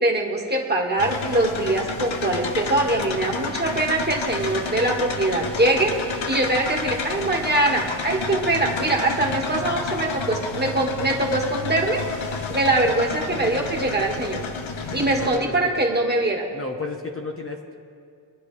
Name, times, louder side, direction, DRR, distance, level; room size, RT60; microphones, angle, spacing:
voice 1, 0.0-12.0 12.5-14.4 14.9-16.4, right 2 dB, 20° right, -1 dB, 1.8 m, -23 dB
sound 1, 1.0-15.4, left 4 dB, 80° left, 1.0 m, -30 dB
voice 2, 15.1-15.7 16.5-17.7, left 3 dB, 30° left, 1 dB, 0.9 m, -33 dB
23.0 x 10.5 x 3.3 m, 2.4 s
wide cardioid pair, 90°, 46 cm